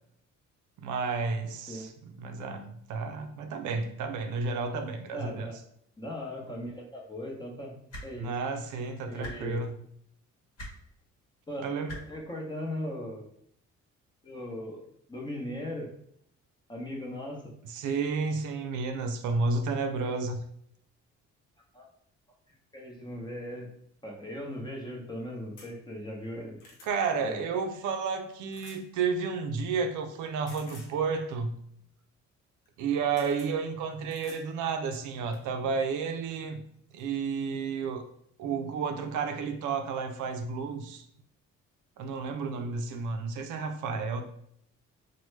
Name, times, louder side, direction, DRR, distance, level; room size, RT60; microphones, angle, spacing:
voice 1, 0.8-5.5 8.1-9.8 11.6-12.0 17.6-20.4 26.8-31.5 32.8-36.6 36.9-38.1 38.4-41.0 42.0-44.2, right 5 dB, 75° right, 6 dB, 0.5 m, -31 dB
voice 2, 5.1-5.6 6.0-7.7 8.0-8.3 9.1-9.6 11.5-11.6 12.1-13.2 14.2-15.9 16.7-17.4 21.7-21.9 22.7-23.7 24.0-26.6 27.2-27.5, left 1 dB, 15° left, -1 dB, 0.8 m, -38 dB
sound 1, 7.9-8.1 9.2-9.3 10.6-10.7 11.9-12.0 13.2-13.3, equal, 55° left, 1.0 m, -39 dB
sound 2, 25.6-25.7 26.2-26.9 28.5-28.8 30.5-30.9 32.6-32.8 33.2-33.5 34.1-34.4 34.9-35.5 36.5-36.6 37.0-37.1, left 2 dB, 90° left, 0.8 m, -52 dB
3.0 x 2.2 x 3.1 m, 0.70 s
cardioid pair, 90°, 30 cm